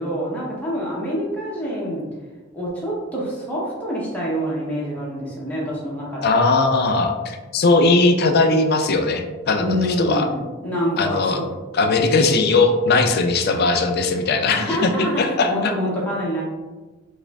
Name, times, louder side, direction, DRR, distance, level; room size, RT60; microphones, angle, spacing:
voice 1, 0.0-2.0 2.5-6.4 9.6-11.5 14.5-16.4, equal, 10° left, -6 dB, 0.6 m, -26 dB
voice 2, 6.2-10.3 11.0-11.4 11.7-15.7, left 3 dB, 50° left, 6 dB, 0.4 m, -19 dB
4.7 x 2.4 x 2.2 m, 1.3 s
head